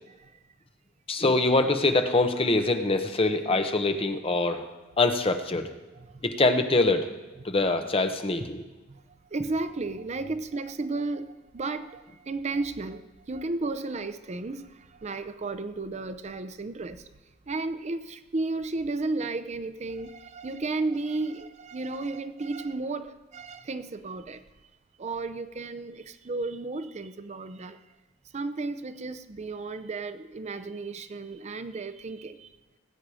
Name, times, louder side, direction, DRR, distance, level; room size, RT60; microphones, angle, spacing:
voice 1, 1.1-4.7 5.0-5.7 6.2-7.1 7.4-8.7, left 2 dB, 30° left, 7 dB, 1.0 m, -24 dB
voice 2, 9.3-17.1 17.5-24.4 25.0-27.8 28.3-32.5, right 3 dB, 35° right, 11 dB, 0.5 m, -33 dB
19.0 x 8.8 x 4.9 m, 1.1 s
head